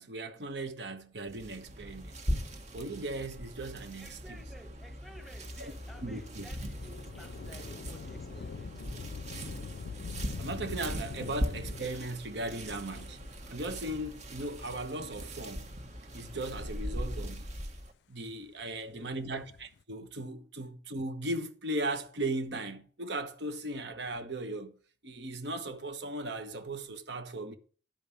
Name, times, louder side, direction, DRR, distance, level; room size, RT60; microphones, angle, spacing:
voice 1, 0.0-2.2 2.7-4.4 5.6-5.7 6.0-6.5 10.4-13.2 13.5-15.7 16.1-17.5 18.1-24.7 25.0-27.6, right 2 dB, 75° right, 1.2 m, -37 dB
sound 1, 1.3-17.9, equal, 40° right, 1.6 m, -40 dB
voice 2, 4.0-9.2 11.2-11.3 16.7-16.8 18.6-19.3, equal, ahead, 1.2 m, -54 dB
Thunder / Rain, 5.5-14.5 15.2-15.3 16.3-17.5 19.1-19.8, left 5 dB, 75° left, 0.4 m, -45 dB
12.0 x 5.3 x 6.9 m
head